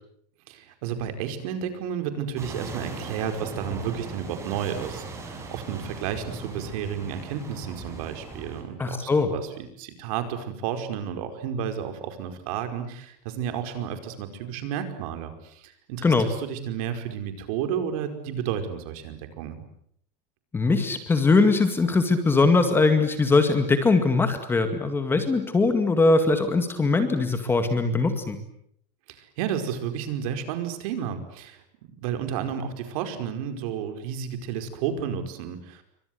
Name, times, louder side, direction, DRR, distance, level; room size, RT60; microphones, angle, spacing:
voice 1, 0.5-19.6 29.1-31.6 32.0-35.8, right 8 dB, 60° right, 7 dB, 5.0 m, -32 dB
sound 1, 2.4-8.6, right 3 dB, 15° right, 5.6 m, -38 dB
voice 2, 8.8-9.3 16.0-16.3 20.5-28.4, left 3 dB, 10° left, 8 dB, 2.0 m, -21 dB
28.5 x 24.5 x 8.0 m, 0.68 s
supercardioid pair, 175°, 21 cm